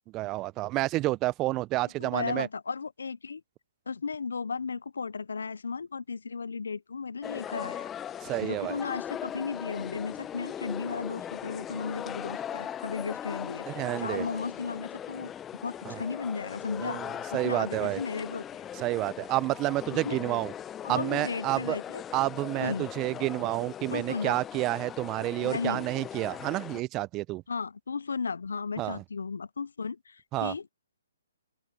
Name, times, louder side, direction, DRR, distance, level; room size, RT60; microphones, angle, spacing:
voice 1, 0.1-2.5 8.2-8.8 13.7-14.3 15.9-16.0 16.8-18.0 18.8-20.5 20.9-21.8 22.1-27.4 28.8-29.0 30.3-30.5, right 18 dB, 25° right, 0.7 m, -30 dB
voice 2, 2.0-3.4 3.9-7.9 8.4-13.6 14.0-15.3 15.6-17.0 17.3-18.4 20.0-20.2 20.8-22.0 22.6-22.9 23.9-24.4 25.4-25.8 27.5-30.7, left 5 dB, 75° left, 0.5 m, -35 dB
sound 1, 7.2-26.8, left 9 dB, 15° left, 0.7 m, -39 dB
open air
hypercardioid pair, 135°, 0 cm